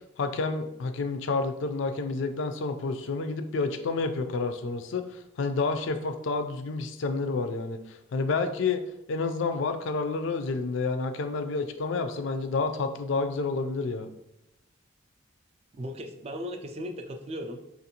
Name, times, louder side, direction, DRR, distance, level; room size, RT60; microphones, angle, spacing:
voice 1, 0.2-8.8 9.1-14.1, left 3 dB, 65° left, 8 dB, 0.4 m, -29 dB
voice 2, 15.8-17.6, equal, 30° right, 4 dB, 0.3 m, -37 dB
4.4 x 2.5 x 2.8 m, 0.89 s
head